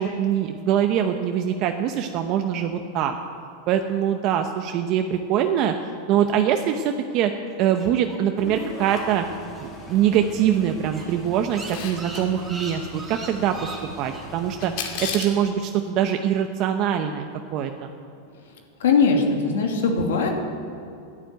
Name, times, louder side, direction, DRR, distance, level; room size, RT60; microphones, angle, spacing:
voice 1, 0.0-3.1 3.7-5.7 6.1-7.3 7.6-9.2 9.6-13.7 14.0-14.7 15.0-17.3 17.5-17.9, right 9 dB, 45° right, 5 dB, 0.8 m, -23 dB
sound 1, 7.5-9.9 10.2-10.3 10.6-10.7 10.9-14.2, right 3 dB, 15° right, 3.6 m, -39 dB
sound 2, 8.4-15.2, left 1 dB, 25° left, 2.8 m, -40 dB
Camera, 11.5-12.2 14.6-15.4, left 7 dB, 55° left, 2.4 m, -31 dB
voice 2, 18.8-20.3, left 4 dB, 90° left, 2 dB, 2.6 m, -20 dB
11.5 x 11.0 x 9.0 m, 2.6 s
supercardioid pair, 140°, 0 cm